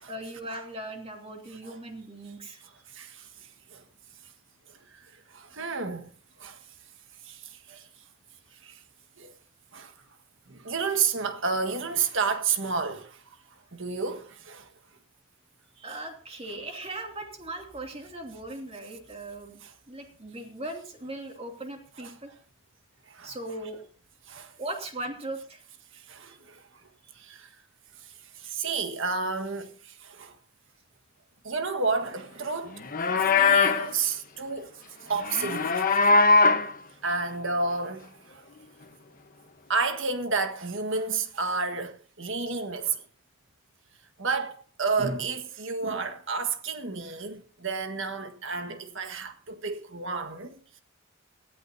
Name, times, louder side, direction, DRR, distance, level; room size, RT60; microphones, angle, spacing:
voice 1, 0.1-2.6 15.8-19.6 19.9-22.3 23.2-23.8 24.6-25.6, right 1 dB, 30° right, 2.6 m, -38 dB
voice 2, 2.9-3.3 3.7-3.8 5.3-6.1 6.4-6.6 7.3-7.8 8.6-8.7 9.2-9.3 9.7-9.9 10.5-13.2 13.7-14.7 19.6-19.7 23.1-23.3 24.3-24.5 26.1-26.6 27.2-27.5 28.4-30.3 31.4-34.7 35.0-35.8 37.0-38.1 39.7-43.0 44.2-50.5, right 4 dB, 60° right, 1.6 m, -31 dB
Livestock farm animals working animals, 32.8-33.9 35.2-36.7, left 4 dB, 40° left, 1.1 m, -21 dB
19.5 x 14.0 x 2.8 m
head